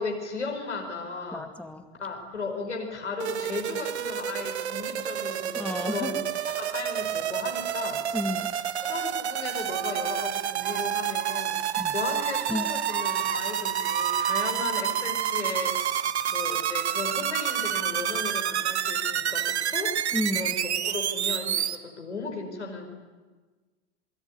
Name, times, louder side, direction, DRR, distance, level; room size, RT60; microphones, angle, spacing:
voice 1, 0.0-1.5 2.0-6.2 6.5-8.1 8.8-11.6 11.9-15.8 16.3-19.9 20.3-22.9, left 4 dB, 85° left, 2 dB, 5.3 m, -35 dB
voice 2, 1.3-1.8 5.6-6.2 8.1-8.5 11.8-11.9 12.5-12.7 20.1-20.5, left 1 dB, 5° left, 7 dB, 2.0 m, -31 dB
sound 1, 3.2-21.8, right 9 dB, 75° right, 1.4 m, -29 dB
sound 2, 9.7-10.3 10.6-10.8 11.2-11.4 11.7-12.5 12.8-13.4 13.7-14.5, right 11 dB, 25° right, 1.1 m, -34 dB
28.0 x 22.0 x 9.7 m, 1.3 s
figure-of-eight pair, 85°, 34 cm